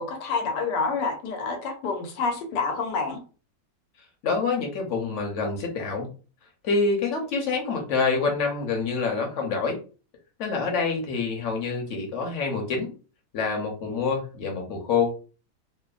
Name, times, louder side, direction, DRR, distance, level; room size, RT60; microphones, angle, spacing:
voice 1, 0.0-3.2, left 4 dB, 85° left, 4 dB, 1.3 m, -28 dB
voice 2, 4.2-6.1 6.6-9.8 10.4-12.9 13.3-15.1, left 4 dB, 55° left, 1 dB, 0.9 m, -26 dB
3.0 x 2.1 x 2.3 m, 0.36 s
omnidirectional pair, 1.8 m